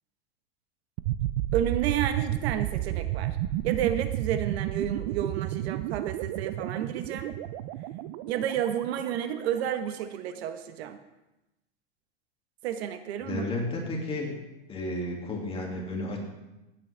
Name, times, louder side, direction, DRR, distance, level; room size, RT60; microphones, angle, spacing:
sound 1, 1.0-9.8, right 14 dB, 50° right, 0.5 m, -32 dB
voice 1, 1.5-3.4 3.6-7.4 8.3-11.0 12.6-13.4, right 10 dB, 75° right, 9 dB, 1.1 m, -31 dB
voice 2, 13.2-14.4 14.7-16.2, left 2 dB, 15° left, -1 dB, 2.2 m, -32 dB
16.5 x 8.6 x 3.4 m, 0.98 s
supercardioid pair, 150°, 32 cm